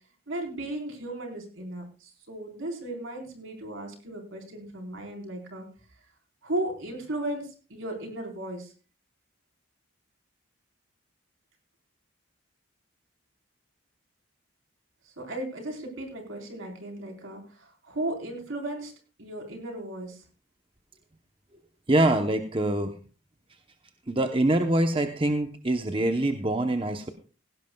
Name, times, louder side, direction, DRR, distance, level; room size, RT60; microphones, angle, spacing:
voice 1, 0.3-5.7 6.4-8.7 15.2-18.9 19.2-20.2, right 1 dB, 75° right, 1 dB, 4.2 m, -35 dB
voice 2, 21.9-22.9 24.1-27.1, right 1 dB, 25° right, 6 dB, 0.9 m, -24 dB
17.0 x 16.5 x 2.3 m, 0.36 s
head